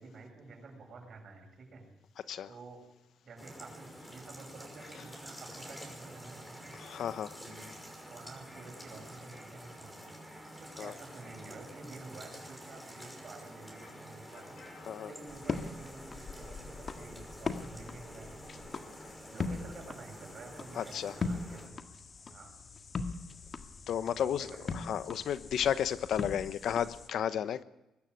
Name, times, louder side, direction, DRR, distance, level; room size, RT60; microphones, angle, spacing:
voice 1, 0.0-1.9 2.5-2.8 3.2-6.8 7.4-7.7 8.1-10.2 10.6-14.6 15.1-18.7 19.3-21.8 22.3-22.6 24.2-25.0, right 3 dB, 55° right, 3 dB, 7.3 m, -50 dB
sound 1, 3.4-21.7, equal, 5° left, 5.8 m, -49 dB
voice 2, 6.8-7.4 10.8-10.9 14.9-15.1 20.8-21.1 23.9-24.5 24.7-27.6, left 9 dB, 70° left, 14 dB, 0.9 m, -33 dB
sound 2, 15.3-27.1, left 4 dB, 40° left, 1.7 m, -41 dB
22.0 x 12.0 x 9.8 m, 0.98 s
cardioid pair, 90°, 0 cm